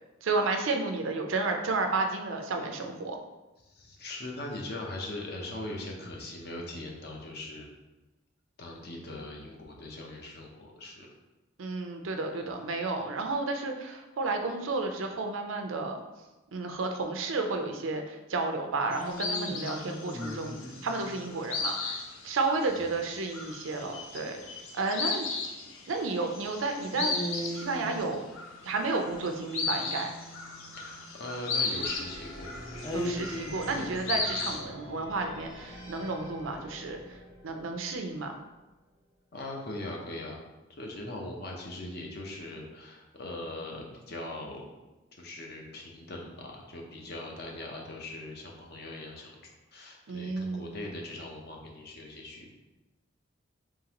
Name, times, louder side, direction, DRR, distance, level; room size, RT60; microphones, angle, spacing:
voice 1, 0.2-3.2 11.6-16.0 16.5-22.0 22.2-24.4 24.7-25.3 25.9-27.1 27.5-28.2 28.6-30.1 32.9-37.2 37.4-38.4 50.1-50.8, right 3 dB, 80° right, 5 dB, 0.5 m, -32 dB
voice 2, 3.6-7.7 8.6-11.1 22.7-22.8 30.8-32.5 39.3-40.4 40.8-44.6 45.2-52.5, left 1 dB, 50° left, 0 dB, 0.7 m, -40 dB
sound 1, 18.8-21.6 26.9-31.3 32.8-34.2, left 1 dB, 20° left, 0.4 m, -40 dB
sound 2, 18.9-34.6, left 4 dB, 85° left, 0.6 m, -36 dB
sound 3, 31.7-38.5, equal, 70° left, 1.3 m, -45 dB
3.7 x 3.6 x 2.9 m, 1.0 s
head